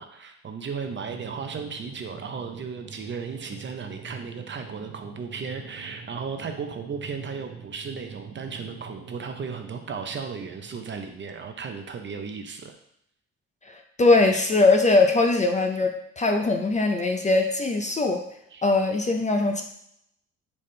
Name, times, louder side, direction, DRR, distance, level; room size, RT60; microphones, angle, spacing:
voice 1, 0.0-12.7 18.5-18.6, right 5 dB, 40° right, 5 dB, 0.6 m, -35 dB
sound 1, 0.8-10.9, right 5 dB, 75° right, 1.0 m, -44 dB
voice 2, 13.7-18.2 18.6-19.6, left 3 dB, 25° left, 4 dB, 0.5 m, -21 dB
4.1 x 3.5 x 3.2 m, 0.73 s
cardioid pair, 90°, 30 cm